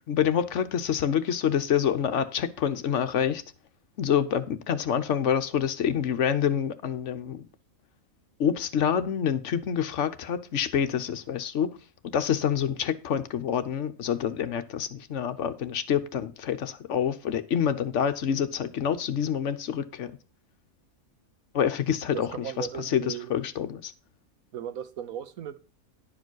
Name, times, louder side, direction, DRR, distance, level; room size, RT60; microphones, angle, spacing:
voice 1, 0.1-3.4 4.0-7.5 8.4-11.7 12.1-20.1 21.5-22.3 22.6-23.9, left 8 dB, 65° left, 1.1 m, -27 dB
voice 2, 22.1-23.3 24.5-25.6, right 9 dB, 90° right, 1.3 m, -36 dB
11.0 x 4.9 x 6.2 m
omnidirectional pair, 1.4 m